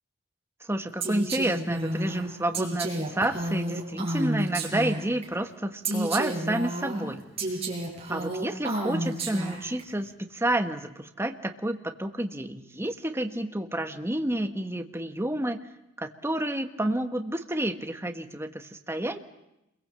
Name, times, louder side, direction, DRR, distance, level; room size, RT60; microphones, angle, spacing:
voice 1, 0.6-7.2 8.1-15.6 16.0-19.2, right 1 dB, 10° right, 6 dB, 1.4 m, -30 dB
Female speech woman speaking, 1.0-5.2 5.8-9.8, right 1 dB, 30° right, 6.6 m, -31 dB
27.5 x 22.5 x 7.7 m, 0.88 s
head